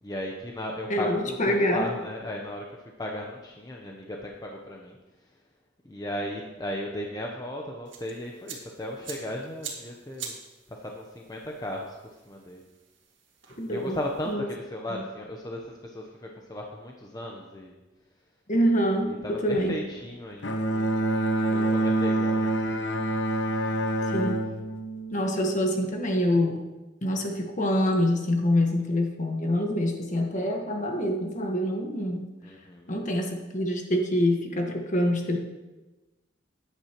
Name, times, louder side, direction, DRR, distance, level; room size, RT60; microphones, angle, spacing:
voice 1, 0.0-5.0 5.8-10.4 10.7-12.6 13.7-17.8 19.0-23.9 32.4-32.9, left 1 dB, 20° left, 0 dB, 0.9 m, -36 dB
voice 2, 0.9-1.8 13.6-14.0 14.3-14.5 14.9-15.0 18.5-19.8 24.1-24.4 25.1-26.7 27.0-32.3 32.9-35.4, equal, 45° left, 3 dB, 1.5 m, -26 dB
sound 1, 7.9-14.3, right 6 dB, 75° right, 2.1 m, -45 dB
Bowed string instrument, 20.4-25.9, right 1 dB, 70° left, 0.8 m, -27 dB
14.0 x 10.0 x 3.1 m, 1.1 s
head